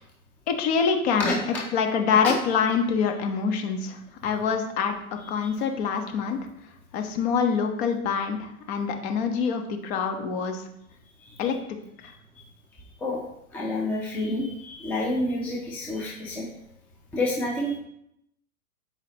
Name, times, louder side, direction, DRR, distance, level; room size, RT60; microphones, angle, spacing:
voice 1, 0.5-6.4 6.9-10.6 11.4-11.6, left 6 dB, 45° left, 4 dB, 1.2 m, -25 dB
voice 2, 13.5-16.5 17.1-17.8, left 1 dB, 5° left, -3 dB, 0.4 m, -28 dB
7.8 x 4.9 x 2.9 m, 0.76 s
hypercardioid pair, 130°, 44 cm